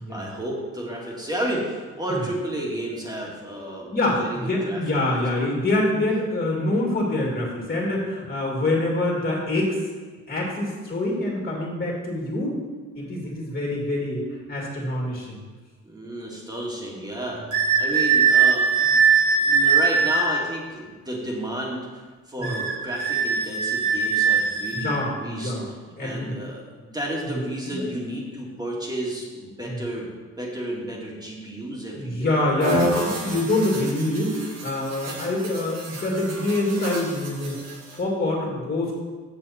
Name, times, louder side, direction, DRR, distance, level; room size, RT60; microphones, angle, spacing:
voice 1, 0.0-3.9 4.2-5.0 15.8-19.1 19.4-25.5 26.0-30.1 30.4-32.4, right 1 dB, 15° right, -3 dB, 2.3 m, -32 dB
voice 2, 3.9-9.8 10.3-12.6 12.9-15.4 22.4-22.6 24.7-25.7 26.0-26.4 27.3-27.8 29.7-29.8 31.9-37.6 37.9-38.9, left 1 dB, 30° left, -2 dB, 2.7 m, -25 dB
sound 1, 17.5-20.3 22.4-25.0, right 6 dB, 75° right, 2.3 m, -20 dB
sound 2, 32.6-38.0, equal, 60° right, 1.9 m, -30 dB
7.3 x 6.8 x 4.4 m, 1.4 s
cardioid pair, 90°, 30 cm